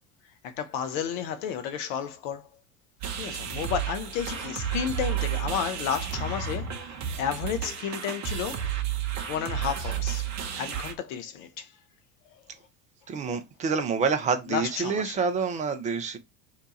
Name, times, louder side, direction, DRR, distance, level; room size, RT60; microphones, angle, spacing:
voice 1, 0.4-2.5 3.2-8.7 9.3-11.7 12.3-12.4 14.5-15.2, left 8 dB, 50° left, 0.5 m, -32 dB
sound 1, 3.0-10.9, right 9 dB, 35° right, 0.7 m, -32 dB
voice 2, 13.1-16.2, right 5 dB, 15° right, 0.3 m, -27 dB
2.8 x 2.2 x 3.9 m
figure-of-eight pair, 75°, 48 cm